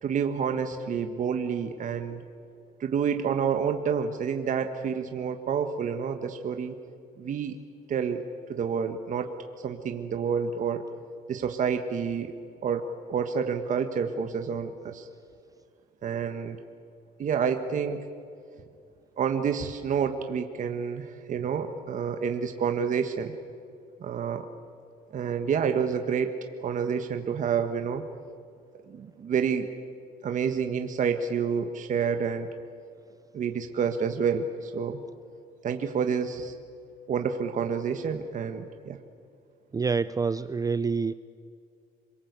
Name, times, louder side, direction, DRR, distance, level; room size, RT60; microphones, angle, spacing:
voice 1, 0.0-2.2 2.8-6.7 7.2-7.5 7.9-9.3 9.6-10.9 11.3-12.3 12.6-15.1 16.0-16.6 17.2-18.0 19.2-23.3 24.0-24.5 25.1-26.3 26.6-28.0 28.9-29.7 30.2-32.5 33.3-35.0 35.6-36.5 37.1-39.0, right 6 dB, 50° right, 6 dB, 1.6 m, -29 dB
voice 2, 39.7-41.1, right 5 dB, 20° right, 15 dB, 0.5 m, -27 dB
26.5 x 23.5 x 8.3 m, 2.3 s
cardioid pair, 110°, 17 cm